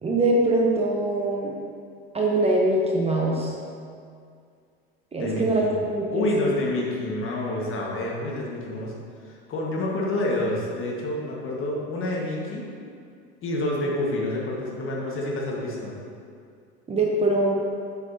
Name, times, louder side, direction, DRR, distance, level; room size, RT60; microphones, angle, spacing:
voice 1, 0.0-1.5 2.1-3.5 5.1-6.5 16.9-17.6, right 1 dB, 20° right, -2 dB, 0.8 m, -23 dB
voice 2, 5.2-5.7 6.1-8.9 9.2-12.6 13.4-16.0, left 1 dB, 40° left, -2 dB, 1.5 m, -28 dB
8.2 x 5.1 x 2.8 m, 2.3 s
hypercardioid pair, 90°, 33 cm